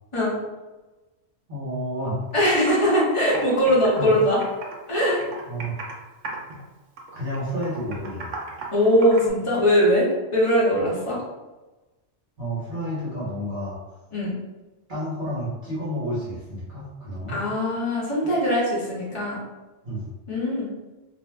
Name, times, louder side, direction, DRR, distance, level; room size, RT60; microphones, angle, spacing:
voice 1, 1.5-2.2 4.0-4.1 5.5-5.7 7.1-8.4 12.4-13.8 14.9-17.4 19.8-20.1, equal, 45° right, -10 dB, 1.1 m, -30 dB
Computer keyboard, 2.2-2.3 2.7-3.0 3.3-4.9 5.2-6.0 6.2-6.6 7.0-9.3, right 3 dB, 85° right, 1.0 m, -36 dB
voice 2, 2.3-4.4 4.9-5.2 8.7-11.2 14.1-14.3 17.3-19.4 20.3-20.7, equal, 30° left, -6 dB, 0.9 m, -21 dB
2.6 x 2.1 x 3.2 m, 1.1 s
omnidirectional pair, 1.2 m